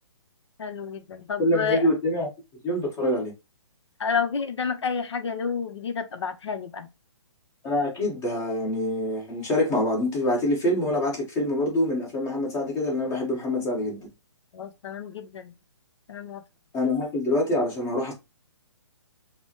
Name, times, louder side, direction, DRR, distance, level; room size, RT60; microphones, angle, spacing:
voice 1, 0.6-1.9 4.0-6.9 14.5-15.5 16.1-16.4, left 6 dB, 65° left, 0.7 m, -30 dB
voice 2, 1.4-2.3 2.6-3.3 7.6-14.0 16.7-18.1, left 1 dB, 20° left, 1.6 m, -25 dB
5.1 x 2.2 x 3.0 m
hypercardioid pair, 145°, 15 cm